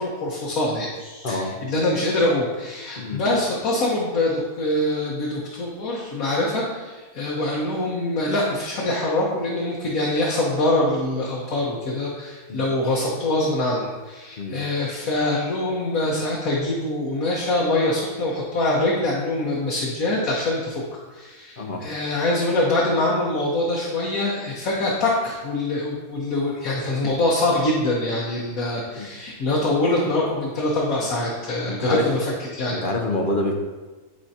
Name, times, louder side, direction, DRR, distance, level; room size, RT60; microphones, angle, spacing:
voice 1, 0.0-20.8 21.1-32.8, left 2 dB, 75° left, -5 dB, 1.5 m, -24 dB
voice 2, 1.2-1.6 3.0-3.2 12.5-12.6 14.4-14.6 21.6-21.8 28.9-29.1 31.6-32.1 32.7-33.5, left 1 dB, 45° left, 2 dB, 0.8 m, -26 dB
11.0 x 4.7 x 2.8 m, 1.3 s
omnidirectional pair, 1.5 m